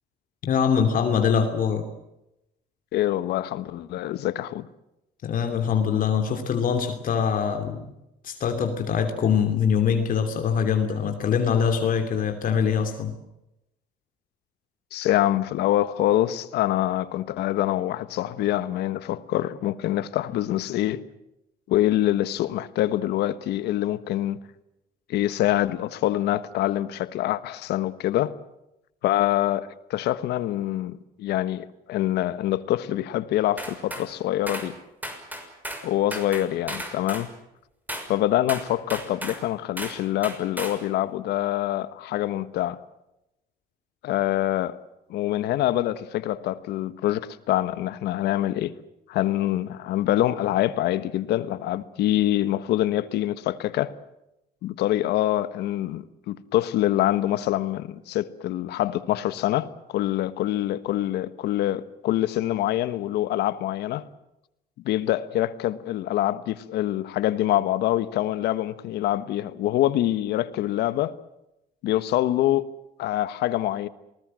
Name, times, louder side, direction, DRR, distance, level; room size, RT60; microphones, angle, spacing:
voice 1, 0.4-1.8 5.2-7.9 8.2-13.1, left 7 dB, 55° left, 2.8 m, -23 dB
voice 2, 2.9-4.7 14.9-21.0 21.7-24.4 25.1-28.4 29.0-34.7 35.8-37.3 38.1-42.8 44.0-44.8 45.1-48.7 49.1-53.9 54.6-64.1 64.8-71.1 71.8-72.6 73.0-73.9, left 13 dB, 80° left, 1.4 m, -25 dB
sound 1, 33.6-34.1 34.5-34.7 35.0-35.9 36.1-37.3 37.9-38.1 38.5-39.4 39.8-40.0 40.2-40.8, right 1 dB, 10° right, 6.1 m, -34 dB
27.5 x 20.0 x 7.7 m
cardioid pair, 110°, 17 cm